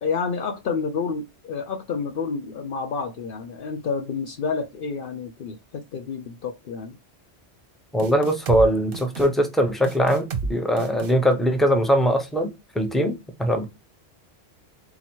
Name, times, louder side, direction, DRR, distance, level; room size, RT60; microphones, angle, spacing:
voice 1, 0.0-7.0, left 5 dB, 60° left, 0.7 m, -29 dB
voice 2, 7.9-12.5 12.7-13.6, equal, ahead, 0.5 m, -21 dB
sound 1, 8.0-8.7 8.9-9.3 9.8-10.5 10.8-11.1, right 4 dB, 60° right, 0.8 m, -30 dB
3.9 x 2.9 x 4.4 m
omnidirectional pair, 1.2 m